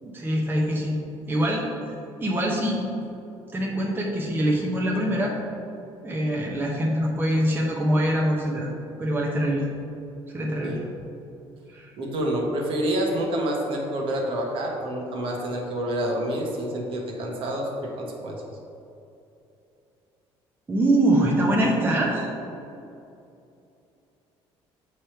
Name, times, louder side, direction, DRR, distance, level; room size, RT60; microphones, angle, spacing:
voice 1, 0.0-1.0 1.3-1.7 2.2-2.8 3.5-5.4 6.0-8.7 9.0-9.7 10.3-10.8 11.7-11.9 20.7-22.3, right 1 dB, 20° right, -2 dB, 0.8 m, -24 dB
voice 2, 12.0-18.4, right 1 dB, 60° right, -1 dB, 1.2 m, -28 dB
7.2 x 3.3 x 4.5 m, 2.7 s
cardioid pair, 115°, 10 cm